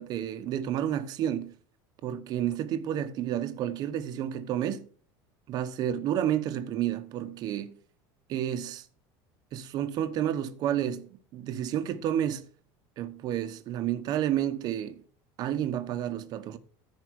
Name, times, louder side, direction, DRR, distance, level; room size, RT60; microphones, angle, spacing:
voice 1, 0.0-1.5 2.0-4.9 5.5-7.8 8.3-8.8 9.5-12.5 13.0-15.0 15.4-16.6, right 11 dB, 40° right, 1.2 m, -30 dB
14.0 x 5.0 x 6.4 m
cardioid pair, 160°, 10 cm